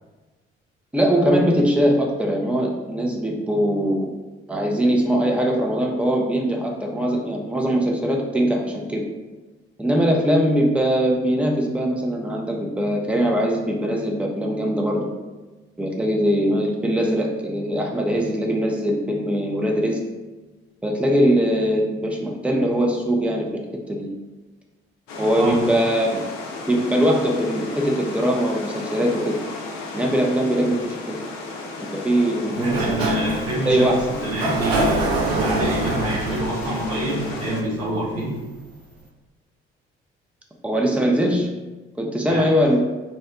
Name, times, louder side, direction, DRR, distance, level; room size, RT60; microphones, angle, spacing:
voice 1, 0.9-4.1 4.5-9.1 9.8-15.1 15.8-20.0 20.8-23.5 23.9-24.1 25.2-26.2 26.6-29.3 29.9-31.2 31.9-33.0 33.7-34.4 40.6-41.5 42.0-42.8, equal, 5° right, 0 dB, 0.5 m, -21 dB
sound 1, 25.1-37.6, left 3 dB, 65° left, 0.5 m, -34 dB
voice 2, 32.5-33.9 34.2-38.4 42.3-42.5, right 1 dB, 50° right, -5 dB, 1.1 m, -26 dB
Sliding door, 32.5-38.2, right 2 dB, 75° right, 0.5 m, -26 dB
2.8 x 2.1 x 3.6 m, 1.2 s
figure-of-eight pair, 45°, 31 cm